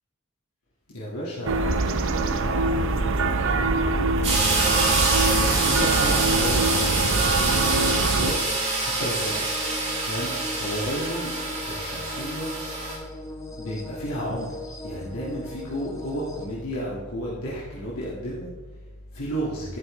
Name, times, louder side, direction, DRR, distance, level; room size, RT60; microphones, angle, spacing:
voice 1, 0.9-4.7 5.1-8.4 8.7-11.4 11.7-12.6 13.5-19.8, equal, 85° left, -6 dB, 2.0 m, -33 dB
sound 1, 1.5-8.3, right 3 dB, 60° right, 0.7 m, -24 dB
sound 2, 4.2-13.0, right 3 dB, 30° right, 3.2 m, -26 dB
sound 3, 9.2-16.5, left 2 dB, 15° left, 1.0 m, -39 dB
12.5 x 11.0 x 3.3 m, 1.3 s
head